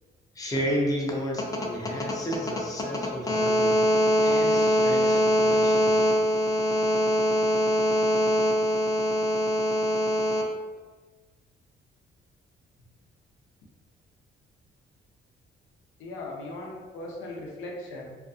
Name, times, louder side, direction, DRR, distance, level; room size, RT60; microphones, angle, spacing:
voice 1, 0.4-10.4, equal, 20° left, -2 dB, 0.6 m, -24 dB
voice 2, 16.0-18.2, left 2 dB, 90° left, -1 dB, 0.5 m, -38 dB
2.5 x 2.3 x 2.5 m, 1.3 s
cardioid pair, 90°, 20 cm